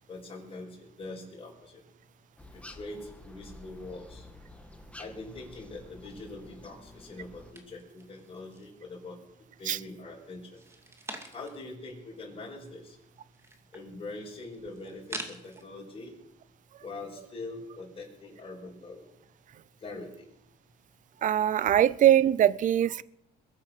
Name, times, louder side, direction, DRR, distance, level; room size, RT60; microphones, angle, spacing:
voice 1, 0.1-1.8 2.5-4.3 5.0-9.2 9.6-10.6 11.3-13.0 13.7-16.1 16.8-19.1 19.8-20.3, left 2 dB, 35° left, -7 dB, 5.9 m, -43 dB
sound 1, 2.4-7.5, left 1 dB, 5° left, 1.6 m, -50 dB
sound 2, 7.5-8.8 9.2-9.9 10.4-11.7 12.1-12.2 12.3-15.6, right 1 dB, 15° right, 2.4 m, -45 dB
voice 2, 21.2-23.0, right 11 dB, 50° right, 20 dB, 0.6 m, -22 dB
22.0 x 8.9 x 6.6 m, 0.80 s
cardioid pair, 110°, 17 cm